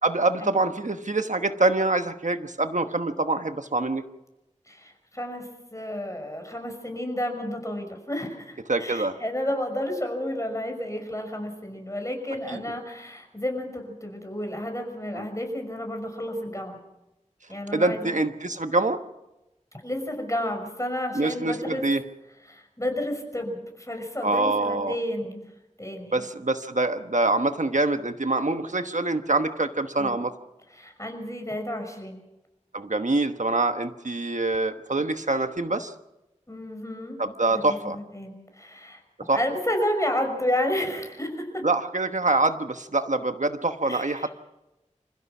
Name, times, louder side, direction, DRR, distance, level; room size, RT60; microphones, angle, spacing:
voice 1, 0.0-4.0 8.7-9.2 12.5-12.6 15.1-15.2 17.7-19.0 21.1-22.0 24.2-25.0 26.1-30.3 32.7-35.9 37.2-38.0 39.3-39.4 41.6-44.3, right 2 dB, 75° right, 8 dB, 1.2 m, -25 dB
voice 2, 4.7-16.8 17.5-18.2 19.8-21.8 22.5-25.4 25.8-26.2 30.0-30.2 30.8-32.2 36.5-37.2 37.5-39.0 39.3-41.6 43.8-44.3, left 1 dB, 25° left, 4 dB, 5.8 m, -31 dB
27.0 x 16.0 x 6.0 m, 0.95 s
wide cardioid pair, 40°, 13 cm